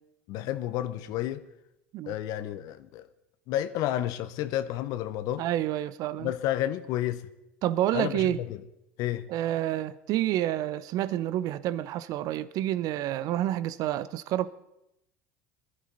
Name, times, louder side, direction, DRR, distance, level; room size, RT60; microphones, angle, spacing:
voice 1, 0.3-1.4 2.1-3.1 3.5-5.4 6.2-7.3 7.9-8.6 9.0-9.3, left 13 dB, 60° left, 0.7 m, -31 dB
voice 2, 5.4-6.3 7.6-8.4 9.3-14.5, right 13 dB, 55° right, 0.6 m, -29 dB
21.0 x 11.0 x 4.0 m
hypercardioid pair, 75°, 7 cm